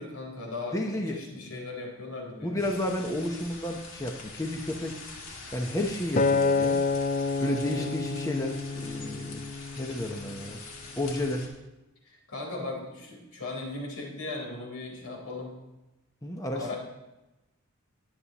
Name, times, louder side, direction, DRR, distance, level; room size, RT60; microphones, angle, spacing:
voice 1, 0.0-2.7 7.4-7.9 12.1-15.5 16.5-16.8, left 2 dB, 85° left, -1 dB, 3.9 m, -38 dB
voice 2, 0.7-1.6 2.4-5.0 5.5-6.8 7.4-9.4 9.8-10.6 10.9-11.5 16.2-16.7, left 1 dB, 15° left, 2 dB, 0.8 m, -32 dB
sound 1, 2.6-11.5, left 3 dB, 65° left, 2.1 m, -44 dB
Acoustic guitar, 6.2-10.5 11.1-11.4, left 4 dB, 35° left, 0.4 m, -28 dB
21.0 x 8.4 x 3.0 m, 1.0 s
head